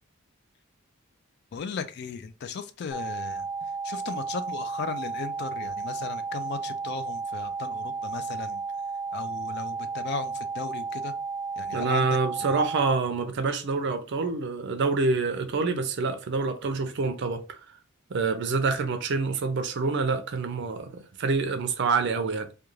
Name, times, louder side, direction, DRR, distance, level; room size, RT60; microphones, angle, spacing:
voice 1, 1.5-3.4 3.8-8.6 9.1-11.1 11.6-12.1, left 5 dB, 50° left, 0.3 m, -36 dB
sound 1, 2.9-12.9, right 4 dB, 35° left, 0.7 m, -33 dB
voice 2, 11.7-17.6 18.1-22.5, right 4 dB, 55° right, 0.4 m, -27 dB
2.4 x 2.3 x 3.0 m
head